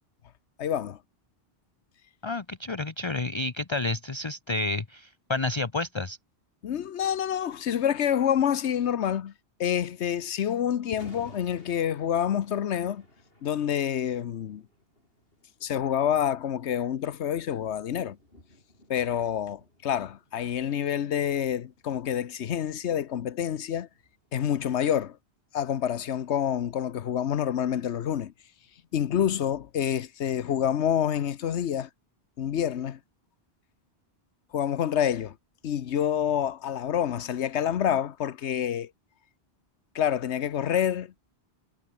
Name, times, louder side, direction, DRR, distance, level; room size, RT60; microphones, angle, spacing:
voice 1, 0.6-1.0 6.6-9.3 9.6-13.0 13.4-14.6 15.6-18.2 18.9-23.9 24.3-25.2 25.5-28.3 28.9-31.9 32.4-33.0 34.5-35.3 35.6-38.9 39.9-41.1, left 9 dB, 90° left, 1.1 m, -27 dB
voice 2, 2.2-6.2, left 2 dB, 25° left, 1.0 m, -30 dB
Thunder, 10.8-24.9, left 1 dB, 60° left, 7.8 m, -55 dB
omnidirectional pair, 1.1 m